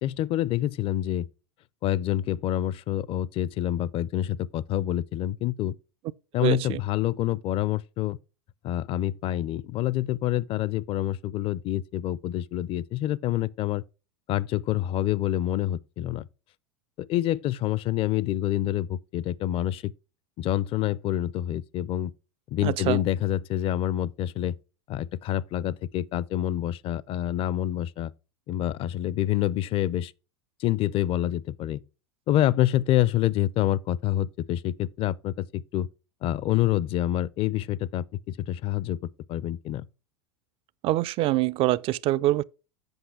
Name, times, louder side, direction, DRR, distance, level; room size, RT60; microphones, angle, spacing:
voice 1, 0.0-1.3 1.8-5.7 6.3-8.2 8.6-13.8 14.3-16.3 17.0-19.9 20.4-22.1 22.5-24.6 24.9-28.1 28.5-30.1 30.6-31.8 32.3-35.9 36.2-39.0 39.3-39.8, left 13 dB, 40° left, 0.5 m, -27 dB
voice 2, 6.4-6.8 22.6-23.0 40.8-42.4, right 16 dB, 40° right, 0.4 m, -24 dB
8.0 x 5.6 x 4.7 m
hypercardioid pair, 90°, 14 cm